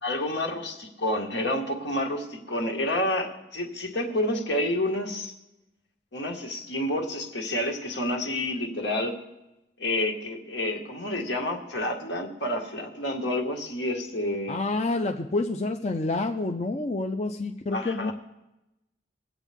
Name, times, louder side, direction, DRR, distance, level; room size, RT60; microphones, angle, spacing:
voice 1, 0.0-5.3 6.1-9.2 9.8-14.6 17.7-18.1, left 1 dB, 80° left, 1 dB, 1.9 m, -29 dB
voice 2, 14.5-18.1, left 2 dB, 40° left, 4 dB, 0.5 m, -28 dB
21.5 x 8.2 x 3.6 m, 0.94 s
head